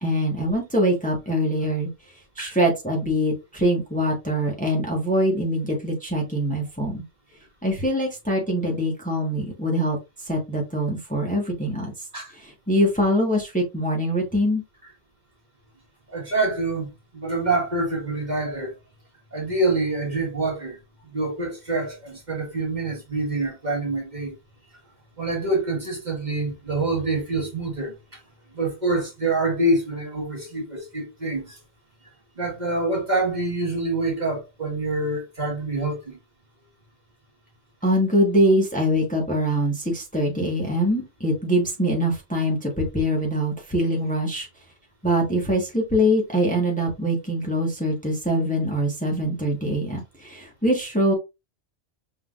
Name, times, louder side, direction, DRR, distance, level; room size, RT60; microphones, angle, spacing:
voice 1, 0.0-1.9 2.4-7.0 7.6-10.0 10.2-11.9 12.4-14.6 37.8-44.5 45.0-51.1, equal, 5° left, 1.3 m, -23 dB
voice 2, 16.1-18.7 19.3-20.8 21.1-24.4 25.2-28.2 28.5-31.6 32.4-36.2, right 2 dB, 35° right, 1.8 m, -26 dB
5.6 x 3.8 x 2.5 m
omnidirectional pair, 1.3 m